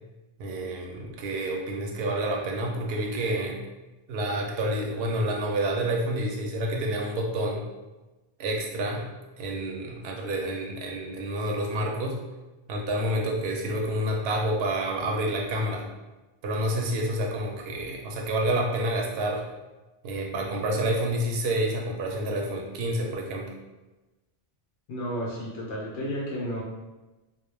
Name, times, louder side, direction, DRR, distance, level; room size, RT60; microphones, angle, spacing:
voice 1, 0.4-3.6 4.1-7.6 8.4-9.1 9.4-12.2 12.7-15.9 16.4-19.4 20.0-23.5, right 1 dB, 65° right, 0 dB, 0.7 m, -28 dB
voice 2, 24.9-26.6, equal, 80° left, -5 dB, 0.9 m, -32 dB
2.2 x 2.1 x 3.1 m, 1.1 s
omnidirectional pair, 1.2 m